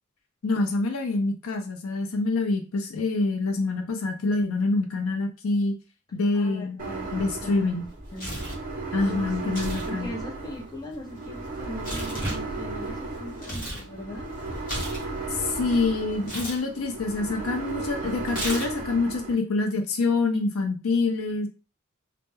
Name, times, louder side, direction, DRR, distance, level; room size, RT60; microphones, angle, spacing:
voice 1, 0.4-5.7 6.1-6.8 7.1-7.9 8.9-10.1 15.3-21.5, left 3 dB, 75° left, 5 dB, 0.5 m, -26 dB
voice 2, 6.3-8.3 9.0-9.6 9.9-14.3, left 1 dB, 20° left, 0 dB, 0.5 m, -40 dB
sound 1, 6.8-19.3, right 3 dB, 40° right, 0.6 m, -35 dB
Tearing, 7.8-8.7 9.4-9.9 10.2-13.9 14.2-15.7 16.2-16.6 18.3-18.9, equal, 40° left, 0.9 m, -35 dB
2.2 x 2.0 x 3.0 m, 0.31 s
head